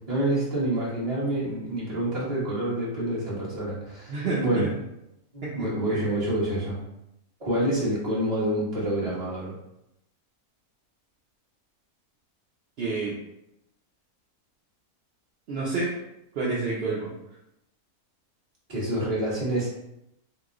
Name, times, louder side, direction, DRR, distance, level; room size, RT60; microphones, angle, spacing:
voice 1, 0.1-4.7 5.3-6.8 7.4-9.5 18.7-19.7, right 1 dB, 25° right, -8 dB, 1.1 m, -27 dB
voice 2, 4.1-4.7 5.4-6.1 12.8-13.1 15.5-15.9 16.4-17.1, right 3 dB, 60° right, -6 dB, 0.7 m, -29 dB
2.9 x 2.2 x 3.6 m, 0.85 s
omnidirectional pair, 1.6 m